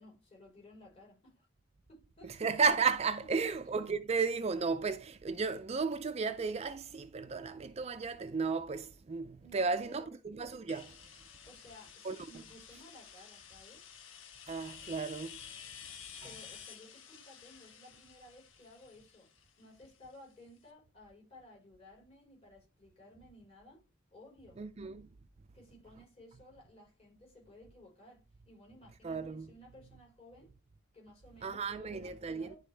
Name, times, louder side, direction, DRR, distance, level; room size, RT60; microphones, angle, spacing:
voice 1, 0.0-1.5 1.9-2.3 3.4-3.5 9.4-10.1 11.4-13.8 16.2-19.3 19.6-23.8 24.1-24.6 25.5-30.5 30.9-32.6, left 1 dB, 30° left, 4.3 m, -57 dB
voice 2, 2.2-11.1 12.0-12.2 14.5-15.5 16.2-16.3 24.6-25.1 29.0-29.5 31.4-32.6, right 5 dB, 35° right, 0.4 m, -34 dB
sound 1, 10.7-20.3, left 8 dB, 90° left, 1.1 m, -52 dB
11.0 x 4.0 x 3.4 m
head